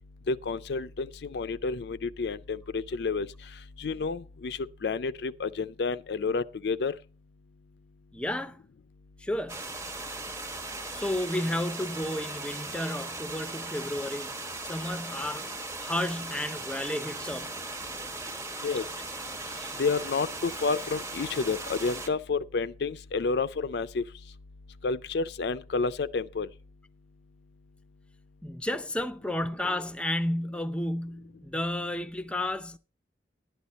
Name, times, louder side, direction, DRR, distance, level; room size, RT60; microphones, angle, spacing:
voice 1, 0.3-3.3 3.8-6.9 18.6-18.8 19.8-24.0 24.8-26.5, left 4 dB, 65° left, 0.4 m, -30 dB
voice 2, 8.1-8.6 9.2-9.6 10.9-15.5 15.8-17.5 18.1-18.6 19.6-19.7 28.4-32.8, left 1 dB, 5° left, 0.5 m, -32 dB
sound 1, 9.5-22.1, right 2 dB, 15° right, 1.1 m, -38 dB
11.5 x 10.0 x 4.1 m
head